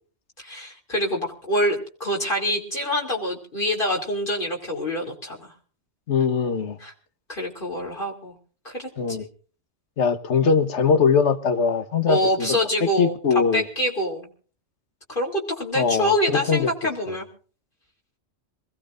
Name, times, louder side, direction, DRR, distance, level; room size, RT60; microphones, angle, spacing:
voice 1, 0.4-5.5 6.8-6.9 7.3-8.4 8.6-9.3 12.1-13.1 13.5-14.3 15.1-17.3, equal, 50° left, 3.1 m, -26 dB
voice 2, 6.1-6.8 9.0-9.2 10.0-12.6 13.0-13.7 15.7-16.7 17.1-17.2, left 5 dB, 90° left, 1.4 m, -21 dB
26.5 x 16.0 x 2.5 m
omnidirectional pair, 1.1 m